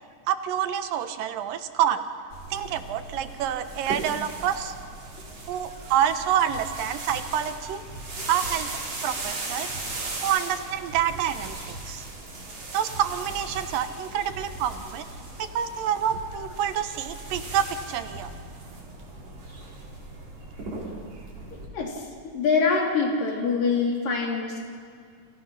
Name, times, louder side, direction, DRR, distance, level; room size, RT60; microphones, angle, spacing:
voice 1, 0.3-2.1 2.5-4.7 5.5-7.8 8.3-8.7 9.0-9.7 10.2-12.1 12.7-15.0 15.4-18.3, right 9 dB, 85° right, 9 dB, 2.9 m, -27 dB
sound 1, 2.3-21.7, right 2 dB, 50° right, 5.1 m, -38 dB
voice 2, 21.7-22.1 22.3-24.6, left 4 dB, 80° left, -1 dB, 5.3 m, -24 dB
30.0 x 26.5 x 5.8 m, 2.2 s
omnidirectional pair, 3.9 m